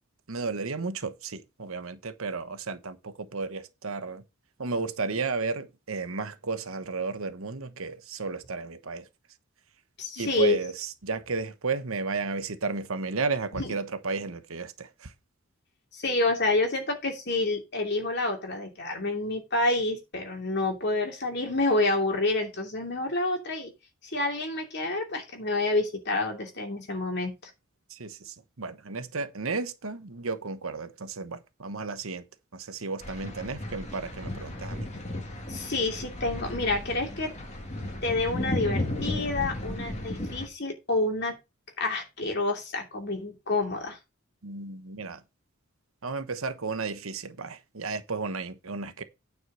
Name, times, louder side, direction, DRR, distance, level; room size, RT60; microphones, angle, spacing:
voice 1, 0.3-4.2 4.6-9.1 10.2-15.1 27.9-32.2 32.5-34.9 44.4-45.2 46.0-49.0, right 4 dB, 75° right, 1.0 m, -33 dB
voice 2, 10.0-10.6 13.6-13.8 15.9-23.7 24.0-27.3 35.5-37.3 38.0-41.3 41.8-44.0, left 2 dB, 50° left, 2.8 m, -28 dB
sound 1, 33.0-40.5, left 1 dB, 30° left, 2.2 m, -34 dB
9.4 x 4.7 x 6.2 m
head